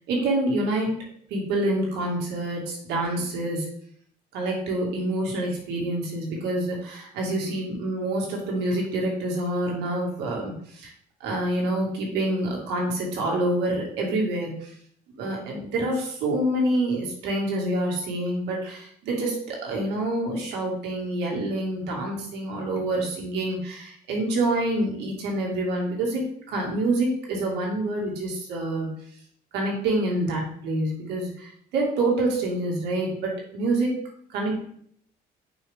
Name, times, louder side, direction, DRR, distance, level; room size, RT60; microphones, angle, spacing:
voice 1, 0.1-0.9 1.3-3.7 4.3-10.9 11.2-14.7 15.1-28.9 29.5-34.0 34.3-34.6, right 1 dB, 80° right, -2 dB, 2.1 m, -27 dB
6.5 x 5.5 x 3.6 m, 0.63 s
cardioid pair, 110°, 17 cm